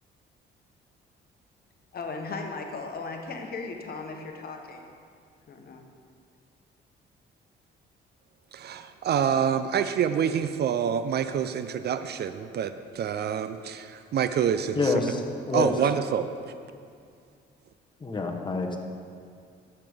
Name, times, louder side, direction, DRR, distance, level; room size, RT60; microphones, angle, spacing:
voice 1, 1.9-4.9 5.5-5.8, left 3 dB, 50° left, 3 dB, 1.2 m, -37 dB
voice 2, 8.5-14.9 15.5-16.3, right 8 dB, 55° right, 11 dB, 0.5 m, -27 dB
voice 3, 14.7-15.2 15.5-15.7 18.0-18.8, left 3 dB, 25° left, 2 dB, 1.1 m, -26 dB
12.0 x 8.0 x 3.6 m, 2.3 s
cardioid pair, 90°, 20 cm